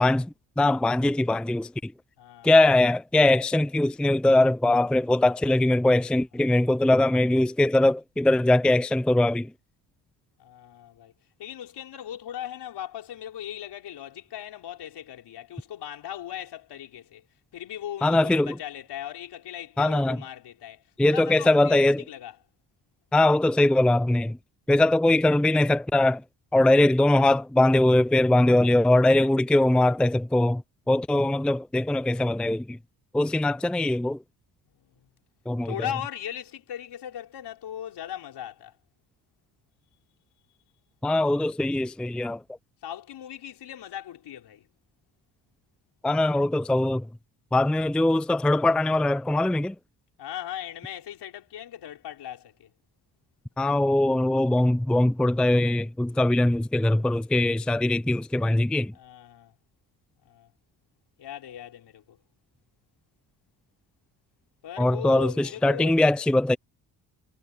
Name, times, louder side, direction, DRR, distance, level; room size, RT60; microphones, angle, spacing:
voice 1, 0.0-1.9 2.4-9.5 18.0-18.5 19.8-20.2 21.0-22.0 23.1-24.4 24.7-26.2 26.5-30.6 30.9-32.8 33.1-34.2 35.5-35.7 41.0-42.4 46.0-47.1 47.5-49.8 53.6-58.9 64.8-66.6, left 1 dB, ahead, 0.5 m, -21 dB
voice 2, 2.2-2.5 6.4-6.5 10.4-11.1 11.4-17.2 17.5-22.4 34.8-35.1 35.6-38.7 42.8-44.7 50.2-52.7 58.9-59.5 60.2-60.5 61.2-62.2 64.6-66.0, left 10 dB, 70° left, 4.7 m, -38 dB
supercardioid pair, 70°, 42 cm